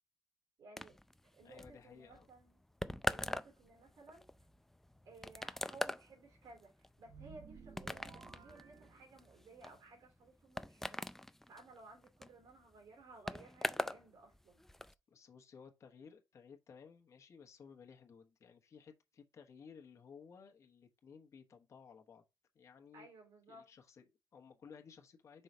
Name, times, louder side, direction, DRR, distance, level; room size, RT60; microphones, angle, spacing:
voice 1, 0.6-1.0 1.3-2.6 3.1-4.2 5.0-11.0 11.5-14.6 22.9-23.7, right 3 dB, 70° right, 2.8 m, -58 dB
sound 1, 0.8-14.0 14.3-14.9, left 1 dB, 5° left, 0.3 m, -43 dB
voice 2, 1.4-2.3 15.1-22.2 22.5-23.1 23.5-25.4, left 6 dB, 50° left, 1.3 m, -57 dB
sound 2, 7.0-9.6, right 6 dB, 50° right, 1.1 m, -56 dB
5.6 x 4.0 x 4.4 m
cardioid pair, 125°, 7 cm